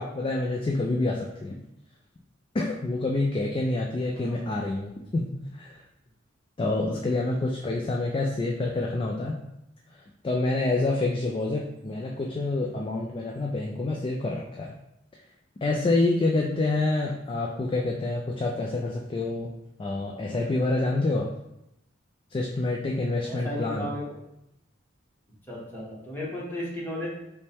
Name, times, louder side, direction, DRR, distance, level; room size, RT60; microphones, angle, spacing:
voice 1, 0.0-1.6 2.5-5.8 6.6-9.4 10.2-14.7 15.6-19.5 19.8-21.3 22.3-23.9, left 2 dB, 25° left, -1 dB, 0.3 m, -27 dB
voice 2, 4.1-4.5 23.2-24.0 25.5-27.1, left 1 dB, 10° left, -6 dB, 1.1 m, -34 dB
5.1 x 2.2 x 3.4 m, 0.84 s
head